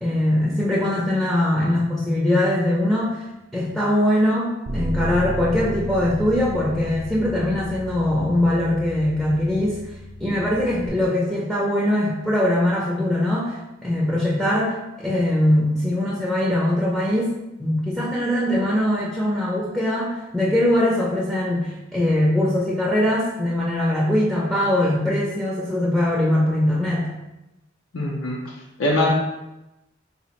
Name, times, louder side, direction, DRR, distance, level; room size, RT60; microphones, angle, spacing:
voice 1, 0.0-3.3 3.5-9.8 10.2-27.1, left 1 dB, ahead, -6 dB, 0.5 m, -21 dB
Bass guitar, 4.7-10.9, left 1 dB, 60° right, 0.6 m, -33 dB
voice 2, 27.9-28.4 28.8-29.1, left 1 dB, 85° left, -3 dB, 0.6 m, -21 dB
4.0 x 2.4 x 2.9 m, 0.95 s
head